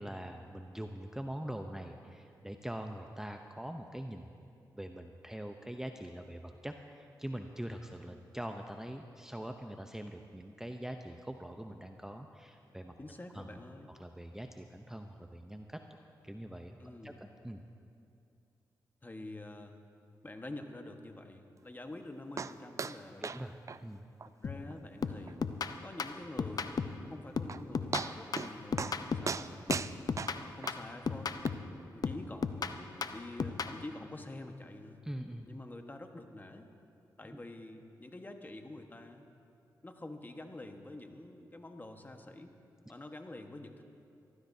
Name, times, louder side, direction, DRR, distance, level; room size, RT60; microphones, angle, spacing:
voice 1, 0.0-4.3 4.7-13.0 13.3-13.6 13.9-15.8 16.2-16.8 17.0-17.6 23.2-24.0 35.0-35.5 37.3-37.4, right 1 dB, 5° right, 5 dB, 0.7 m, -43 dB
voice 2, 13.0-13.9 16.8-17.2 19.0-19.8 20.2-23.4 24.4-25.4 25.8-26.8 27.1-29.8 30.4-31.4 31.9-35.0 35.5-36.7 37.2-39.2 39.8-42.5 42.9-43.8, left 2 dB, 25° left, 5 dB, 1.3 m, -47 dB
sound 1, 22.4-22.5 22.8-23.0 23.2-23.4 23.7-23.8 24.2-24.3 24.7-24.8 25.3-25.4 27.1-27.2 27.5-27.6 27.9-28.5 28.8-29.0 29.3-30.7 31.5-31.6, right 5 dB, 40° right, 0.4 m, -36 dB
sound 2, 24.4-24.7 25.0-27.1 27.4-29.4 29.7-31.7 32.0-33.8, left 5 dB, 55° left, 0.7 m, -36 dB
23.0 x 14.5 x 2.8 m, 2.6 s
cardioid pair, 55°, 8 cm